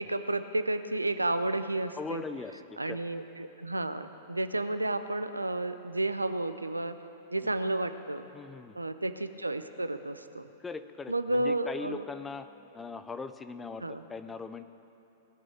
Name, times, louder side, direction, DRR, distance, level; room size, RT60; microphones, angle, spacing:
voice 1, 0.0-2.2 2.8-7.0 7.3-8.3 8.8-10.5 11.1-12.0 13.8-14.0, right 2 dB, 85° right, 10 dB, 0.5 m, -31 dB
voice 2, 2.0-3.0 8.3-8.8 10.6-12.5 12.7-14.7, left 4 dB, 15° left, 11 dB, 0.6 m, -40 dB
18.5 x 6.3 x 8.8 m, 2.8 s
figure-of-eight pair, 100°, 0 cm